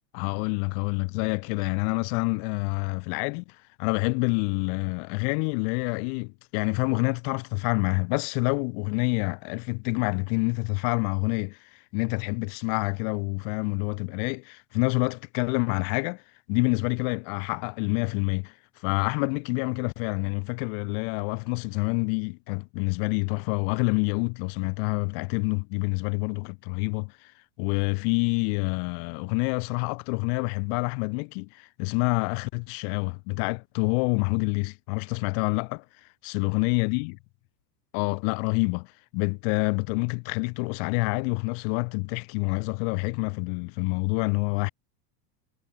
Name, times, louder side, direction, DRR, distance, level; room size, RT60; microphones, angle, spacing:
voice 1, 0.1-16.2 16.5-18.5 18.8-27.3 27.6-35.8 36.3-37.2 37.9-38.9 39.1-44.7, left 40 dB or more, 40° left, 0.6 m, -27 dB
supercardioid pair, 160°, 49 cm